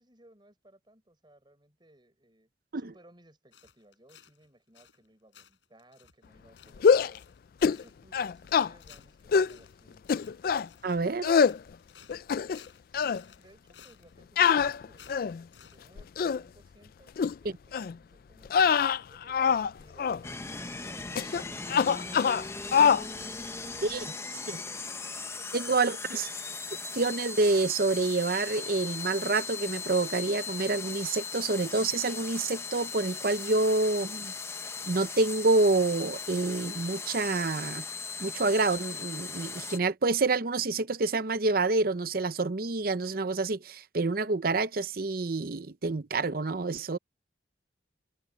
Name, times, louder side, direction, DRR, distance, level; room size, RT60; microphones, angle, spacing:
voice 1, 0.0-2.5 2.7-7.2 7.6-10.0 12.9-18.5 19.1-23.6 23.8-24.8 25.4-26.4, right 1 dB, 25° right, 5.3 m, -60 dB
sound 1, 3.5-4.5 4.7-5.1 5.3-15.8, left 9 dB, 85° left, 5.4 m, -57 dB
sound 2, 6.8-7.2 7.6-7.8 8.1-8.7 9.3-9.6 10.1-10.7 11.2-11.6 12.1-12.7 12.9-13.2 14.4-15.4 16.0-16.4 17.2-17.3 17.7-17.9 18.5-19.7 20.0-20.2 21.2-21.4 21.7-22.4 22.7-23.1, left 6 dB, 50° left, 0.3 m, -24 dB
voice 2, 10.8-11.3 23.8-24.0 24.5-24.6 25.5-26.3 26.9-34.3 34.9-37.8 38.2-47.0, right 3 dB, 55° right, 0.7 m, -27 dB
sound 3, 20.2-39.8, left 4 dB, 15° left, 0.7 m, -38 dB
head